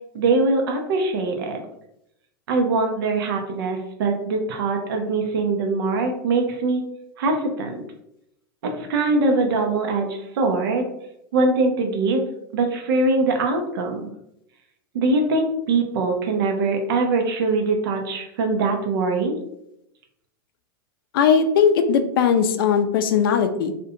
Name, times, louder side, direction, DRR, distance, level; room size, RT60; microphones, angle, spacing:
voice 1, 0.1-1.6 2.5-6.8 7.2-7.8 8.6-10.9 11.3-12.2 12.5-14.1 14.9-19.3, right 3 dB, 75° right, 3 dB, 0.5 m, -22 dB
voice 2, 21.1-23.7, left 7 dB, 75° left, 8 dB, 0.4 m, -19 dB
2.4 x 2.2 x 2.7 m, 0.80 s
supercardioid pair, 155°, 12 cm